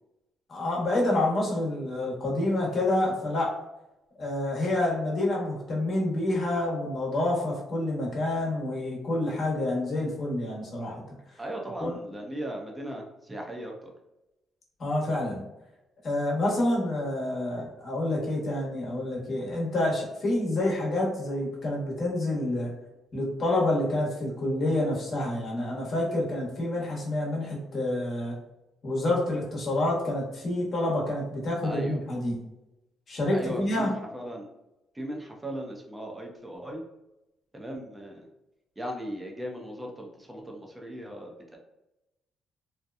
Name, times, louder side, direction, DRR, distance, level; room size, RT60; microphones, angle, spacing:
voice 1, 0.5-3.5 4.2-11.0 11.8-11.9 14.8-15.4 16.0-22.7 23.1-28.3 28.8-32.4 33.1-33.9, left 1 dB, 50° left, -3 dB, 1.0 m, -28 dB
voice 2, 11.4-13.9 31.6-32.0 33.3-34.5 34.9-36.8 37.5-38.3 38.8-41.6, equal, 15° right, 0 dB, 0.6 m, -37 dB
2.8 x 2.1 x 2.3 m, 0.94 s
cardioid pair, 90°, 0 cm